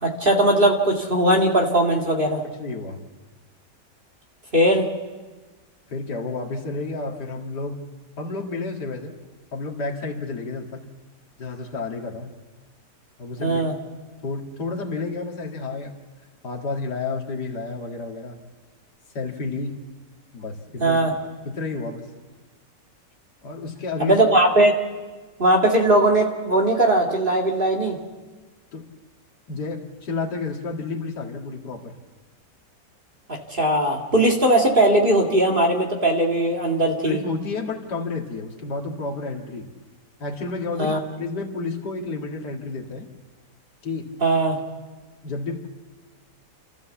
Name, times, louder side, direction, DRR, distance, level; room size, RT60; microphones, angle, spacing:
voice 1, 0.0-2.4 4.5-4.9 13.4-13.7 20.8-21.1 24.0-24.7 25.4-28.0 33.3-37.2 40.8-41.0 44.2-44.6, right 1 dB, 30° right, 1 dB, 2.3 m, -19 dB
voice 2, 2.4-3.0 5.9-7.8 8.2-9.1 9.5-10.8 11.4-12.3 13.2-13.7 14.2-15.9 16.4-18.4 19.1-19.8 20.3-21.1 21.4-22.1 23.4-24.2 28.7-28.8 29.5-32.0 37.0-39.7 40.2-43.1 43.8-44.1 45.2-45.7, left 3 dB, 70° left, 0 dB, 2.5 m, -31 dB
29.0 x 13.5 x 7.2 m, 1.3 s
omnidirectional pair, 1.9 m